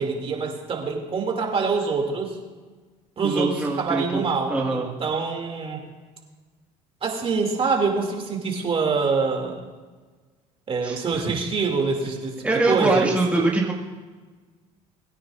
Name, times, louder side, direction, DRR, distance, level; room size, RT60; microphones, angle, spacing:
voice 1, 0.0-2.4 3.2-5.8 7.0-9.6 10.7-13.5, right 4 dB, 40° right, 2 dB, 2.5 m, -25 dB
voice 2, 3.2-4.2 4.5-4.9 10.8-11.0 12.4-13.7, right 3 dB, 10° right, -2 dB, 1.7 m, -23 dB
20.5 x 9.4 x 2.5 m, 1.4 s
supercardioid pair, 90°, 15 cm